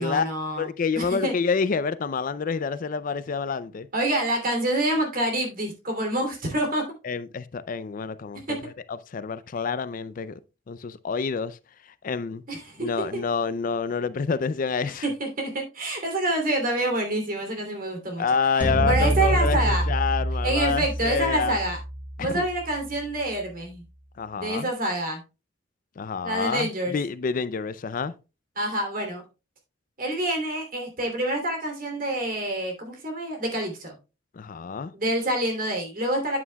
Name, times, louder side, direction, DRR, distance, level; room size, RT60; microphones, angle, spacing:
voice 1, 0.0-0.7 0.9-1.3 3.9-6.8 8.5-8.6 12.5-12.9 15.0-18.2 18.9-19.8 20.4-21.8 22.2-23.8 24.3-25.2 26.2-27.0 28.6-29.2 30.0-33.9 34.9-36.4, right 1 dB, 50° right, 2.9 m, -27 dB
voice 2, 0.6-3.9 7.0-10.4 10.7-11.6 12.0-12.4 12.8-15.1 18.2-21.6 22.2-22.5 24.2-24.7 26.0-28.1 34.3-34.9, left 5 dB, 45° left, 0.4 m, -28 dB
sound 1, 18.6-22.9, right 1 dB, 10° right, 0.9 m, -26 dB
9.4 x 8.4 x 2.3 m
head